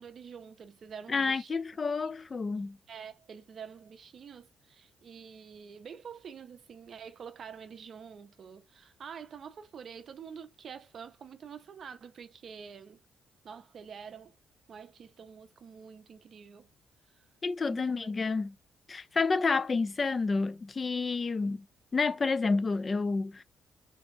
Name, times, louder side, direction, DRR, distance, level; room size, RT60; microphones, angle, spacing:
voice 1, 0.0-1.6 2.9-13.0 13.4-14.4 14.7-16.7 17.1-17.3 17.6-17.9 18.3-18.4, right 7 dB, 55° right, 0.5 m, -47 dB
voice 2, 1.1-2.8 17.4-18.5 18.9-21.6 21.9-23.4, left 4 dB, 35° left, 0.3 m, -29 dB
2.7 x 2.3 x 2.4 m
cardioid pair, 90°, 0 cm